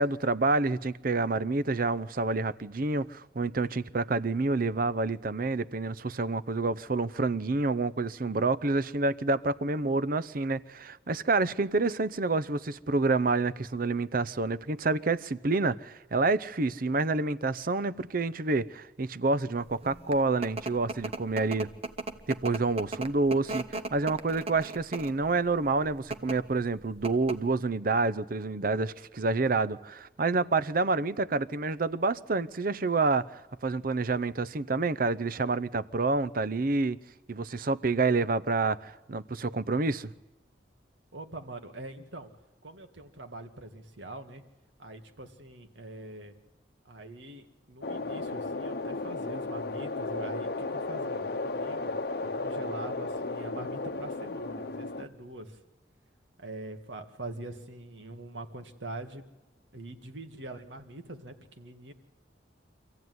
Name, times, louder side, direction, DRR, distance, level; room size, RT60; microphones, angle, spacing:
voice 1, 0.0-21.7 22.3-23.6 23.9-37.0 37.3-40.1, right 3 dB, 50° right, 0.7 m, -28 dB
sound 1, 19.8-25.2 26.0-26.4 26.7-26.8 27.0-27.5, right 3 dB, 35° right, 1.1 m, -36 dB
voice 2, 41.1-42.3 42.6-44.4 44.8-46.3 46.9-51.9 52.2-55.6 56.4-59.2 59.7-61.9, right 2 dB, 85° right, 2.1 m, -43 dB
sound 2, 47.8-55.1, left 3 dB, 60° left, 0.9 m, -34 dB
26.0 x 15.0 x 9.5 m
head